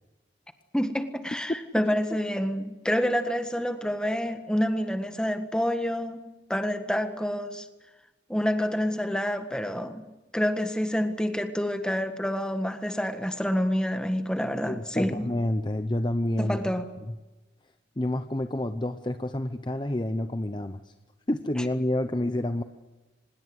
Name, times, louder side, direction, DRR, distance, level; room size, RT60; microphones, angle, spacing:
voice 1, 0.7-6.2 6.5-7.7 8.3-10.0 10.3-15.2 16.4-16.8, equal, 5° left, 7 dB, 1.7 m, -28 dB
voice 2, 14.6-16.6 17.1-17.2 18.0-20.9 21.3-22.6, left 1 dB, 25° left, 9 dB, 0.8 m, -28 dB
25.0 x 21.0 x 8.1 m, 1.1 s
head